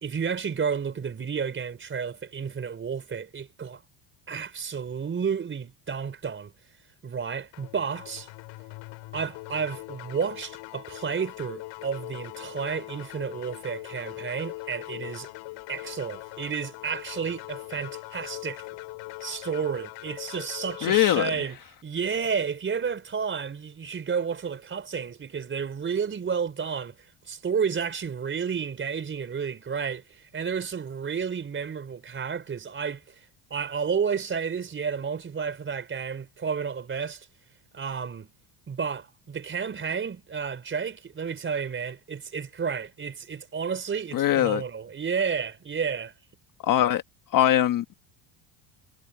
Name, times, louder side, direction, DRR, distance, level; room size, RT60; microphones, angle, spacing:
voice 1, 0.0-3.8 4.3-6.5 7.0-8.3 9.1-15.3 15.7-18.6 19.2-21.6 21.8-33.1 33.5-37.3 37.7-38.3 38.7-46.1, right 6 dB, 25° right, 4.3 m, -31 dB
sound 1, 7.5-21.2, left 21 dB, 75° left, 5.4 m, -41 dB
voice 2, 20.8-21.3 44.1-44.6 46.6-47.0 47.3-47.9, left 12 dB, 45° left, 1.4 m, -22 dB
cardioid pair, 150°, 46 cm